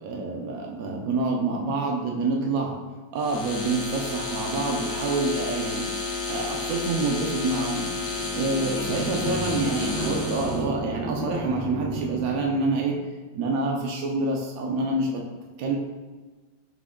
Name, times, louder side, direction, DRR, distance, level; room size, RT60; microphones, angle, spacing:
voice 1, 0.0-2.7 3.1-5.9 6.3-7.9 8.3-13.0 13.3-15.2 15.6-15.8, right 3 dB, 75° right, -1 dB, 0.8 m, -27 dB
sound 1, 3.2-10.7, left 3 dB, 70° left, 1.4 m, -31 dB
sound 2, 7.9-12.9, right 1 dB, 15° left, 0.4 m, -32 dB
5.9 x 2.2 x 3.5 m, 1.3 s
omnidirectional pair, 2.0 m